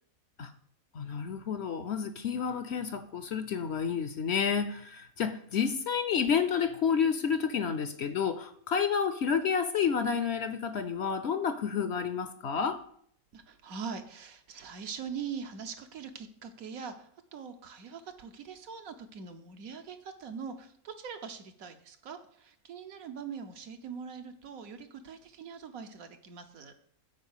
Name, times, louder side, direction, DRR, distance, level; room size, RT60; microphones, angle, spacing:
voice 1, 0.9-12.8, left 6 dB, 60° left, 10 dB, 0.8 m, -30 dB
voice 2, 13.3-26.7, right 6 dB, 75° right, 6 dB, 1.4 m, -42 dB
9.6 x 4.3 x 7.2 m, 0.65 s
omnidirectional pair, 1.5 m